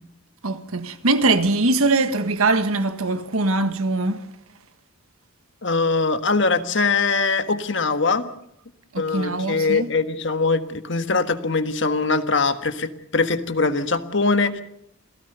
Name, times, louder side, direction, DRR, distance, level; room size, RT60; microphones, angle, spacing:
voice 1, 0.4-4.2 8.9-9.9, right 2 dB, 85° right, 1.5 m, -22 dB
voice 2, 5.6-8.3 9.0-14.6, left 4 dB, 55° left, 1.4 m, -22 dB
27.5 x 17.0 x 6.8 m
head